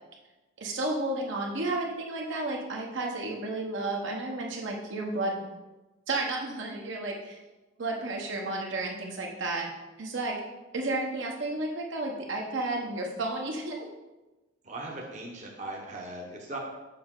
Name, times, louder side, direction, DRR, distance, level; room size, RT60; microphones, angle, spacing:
voice 1, 0.6-5.4 6.1-7.4 7.8-9.7 10.0-10.4 10.7-13.9, right 2 dB, 65° right, 0 dB, 1.0 m, -32 dB
voice 2, 14.6-16.6, right 2 dB, 35° right, -1 dB, 0.9 m, -39 dB
6.8 x 5.3 x 3.8 m, 1.1 s
head